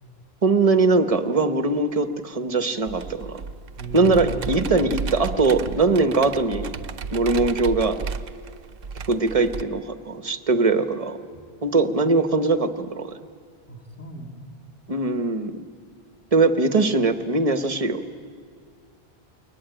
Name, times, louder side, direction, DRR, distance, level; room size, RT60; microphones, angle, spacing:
voice 1, 0.4-3.4 3.9-6.8 7.1-8.0 9.1-11.2 11.6-13.1 14.9-15.6 16.3-18.0, right 3 dB, 35° right, 10 dB, 1.1 m, -21 dB
Computer keyboard, 2.9-9.6, right 5 dB, 65° right, 0.9 m, -33 dB
voice 2, 3.8-4.4 11.3-11.4 11.8-12.0 13.7-14.4, equal, 15° left, 1 dB, 2.6 m, -36 dB
22.5 x 19.5 x 8.9 m, 2.2 s
omnidirectional pair, 1.0 m